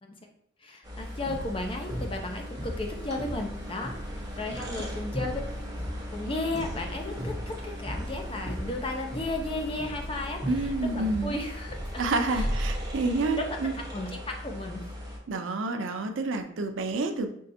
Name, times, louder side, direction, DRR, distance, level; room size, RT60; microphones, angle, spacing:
voice 1, 0.6-5.5 6.1-12.5 13.4-13.6 13.9-14.9, left 2 dB, 25° left, 3 dB, 0.5 m, -34 dB
sound 1, 0.8-15.2, equal, 20° right, 1.0 m, -39 dB
sound 2, 1.0-13.2, equal, ahead, 1.4 m, -36 dB
voice 2, 10.5-11.3 12.0-13.7 15.3-17.3, right 3 dB, 80° right, 7 dB, 0.5 m, -29 dB
5.4 x 3.2 x 2.7 m, 0.70 s
head